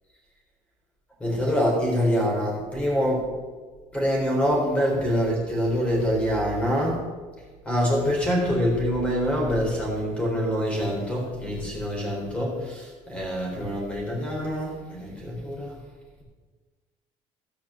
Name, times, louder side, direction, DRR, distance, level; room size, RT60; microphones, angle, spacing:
voice 1, 1.2-3.3 3.9-7.0 7.7-15.8, equal, 10° left, -2 dB, 3.7 m, -25 dB
14.5 x 5.9 x 7.0 m, 1.4 s
cardioid pair, 170°, 13 cm